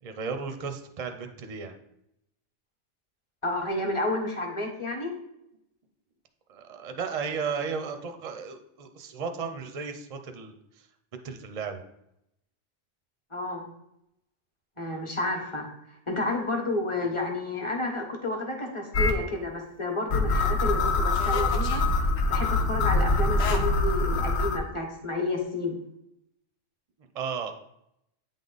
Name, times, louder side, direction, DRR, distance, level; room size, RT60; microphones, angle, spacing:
voice 1, 0.0-1.8 6.5-10.9 11.2-11.8 27.1-27.5, right 5 dB, 40° right, 7 dB, 0.6 m, -34 dB
voice 2, 3.4-5.1 13.3-13.7 14.8-15.7 16.1-22.0 22.3-25.7, left 2 dB, 25° left, 2 dB, 1.1 m, -30 dB
sound 1, 18.9-19.1 20.1-24.6, left 3 dB, 65° left, 1.0 m, -24 dB
8.7 x 3.6 x 3.9 m, 0.81 s
omnidirectional pair, 1.2 m